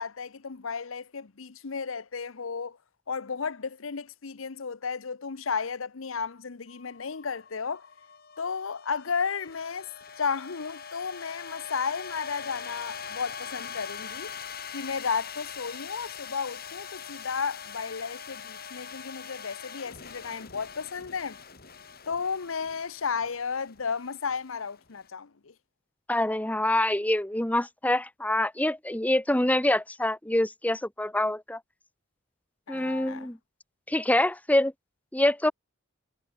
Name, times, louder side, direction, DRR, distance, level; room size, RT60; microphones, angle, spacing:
voice 1, 0.0-2.8 3.1-7.9 8.4-9.9 10.2-14.3 14.7-21.4 22.1-25.5 32.7-33.3, left 5 dB, 85° left, 0.8 m, -33 dB
sound 1, 6.7-25.0, left 7 dB, 50° left, 5.4 m, -43 dB
voice 2, 26.1-31.6 32.7-33.4 33.9-34.7 35.1-35.5, left 1 dB, 10° left, 0.9 m, -25 dB
head